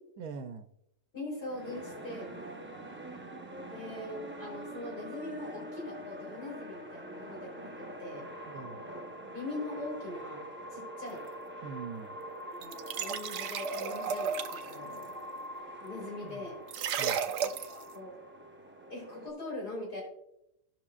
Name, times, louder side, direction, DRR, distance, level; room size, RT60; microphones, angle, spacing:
voice 1, 0.2-0.7 8.5-8.9 11.6-12.2 16.2-16.5 17.0-17.2, right 5 dB, 70° right, 8 dB, 1.1 m, -43 dB
voice 2, 1.1-2.4 3.6-8.3 9.3-10.4 10.7-11.2 12.5-15.1 15.8-16.6 17.7-18.1 18.9-20.0, left 2 dB, 70° left, -3 dB, 4.2 m, -41 dB
sound 1, 1.4-19.3, equal, 10° right, 0.6 m, -44 dB
sound 2, 12.6-14.7 16.7-17.8, right 7 dB, 90° right, 1.2 m, -33 dB
17.5 x 6.1 x 2.4 m, 0.82 s
omnidirectional pair, 1.7 m